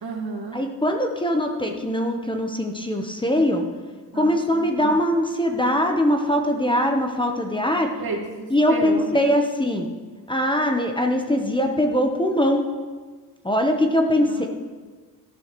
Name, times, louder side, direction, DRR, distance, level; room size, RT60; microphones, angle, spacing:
voice 1, 0.0-0.6 4.1-5.0 8.0-9.3 14.2-14.5, right 3 dB, 65° right, 1 dB, 2.1 m, -33 dB
voice 2, 0.5-3.6 4.1-7.9 8.5-9.9 10.3-12.6 13.4-14.5, equal, 10° left, 3 dB, 1.0 m, -22 dB
14.0 x 11.5 x 3.2 m, 1.5 s
cardioid pair, 100°, 40 cm